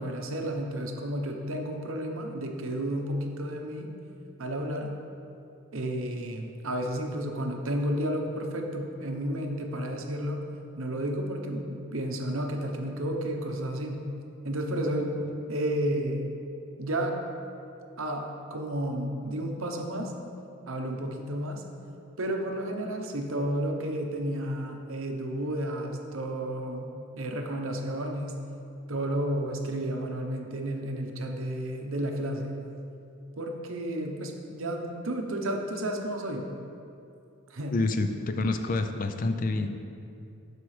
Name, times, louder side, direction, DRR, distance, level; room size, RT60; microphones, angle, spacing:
voice 1, 0.0-3.9 4.4-4.9 5.7-10.4 10.8-14.0 14.4-15.1 15.5-16.3 16.8-17.2 18.0-20.1 20.7-21.6 22.2-26.9 27.2-28.4 28.9-32.6 33.4-36.5 37.5-37.7, right 1 dB, 70° right, 2 dB, 0.8 m, -32 dB
voice 2, 37.7-39.7, left 2 dB, 40° left, 7 dB, 0.4 m, -28 dB
12.0 x 4.9 x 3.2 m, 2.6 s
head